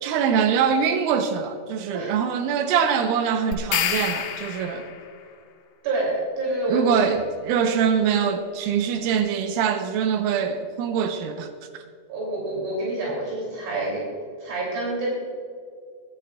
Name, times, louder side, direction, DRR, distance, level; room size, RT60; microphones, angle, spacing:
voice 1, 0.0-4.9 6.7-11.5, right 7 dB, 90° right, 3.4 m, -23 dB
sound 1, 3.5-5.1, left 9 dB, 70° left, 3.0 m, -27 dB
voice 2, 5.8-7.1 12.1-14.0 14.4-15.1, right 2 dB, 70° right, 5.8 m, -27 dB
24.0 x 12.0 x 2.5 m
omnidirectional pair, 5.7 m